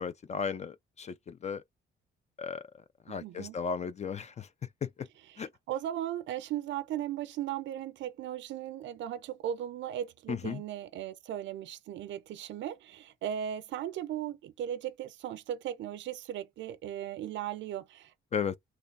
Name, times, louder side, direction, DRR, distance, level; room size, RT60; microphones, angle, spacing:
voice 1, 0.0-1.6 2.4-2.6 3.1-4.5 4.8-5.1 5.4-5.5 10.3-10.6 18.3-18.6, left 6 dB, 35° left, 0.4 m, -35 dB
voice 2, 3.2-3.6 5.3-18.1, right 11 dB, 70° right, 0.5 m, -37 dB
3.3 x 2.3 x 4.0 m
cardioid pair, 90°, 20 cm